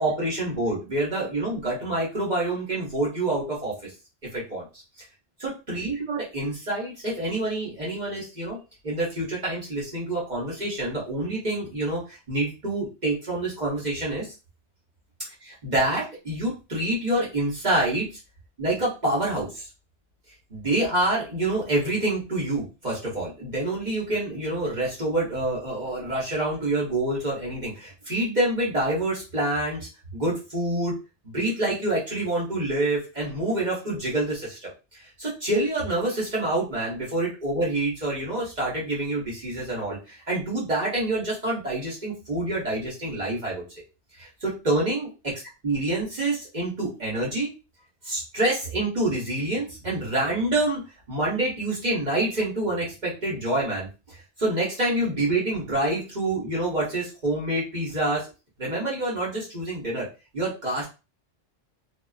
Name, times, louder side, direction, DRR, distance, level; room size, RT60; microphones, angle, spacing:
voice 1, 0.0-3.9 4.3-4.7 5.4-8.6 8.8-14.3 15.4-18.2 18.6-19.7 20.5-30.9 31.2-43.6 44.1-45.3 45.6-47.5 48.0-50.8 51.1-58.3 58.6-60.1 60.3-60.9, right 2 dB, 40° right, -5 dB, 1.0 m, -27 dB
2.4 x 2.4 x 2.3 m, 0.29 s
omnidirectional pair, 1.2 m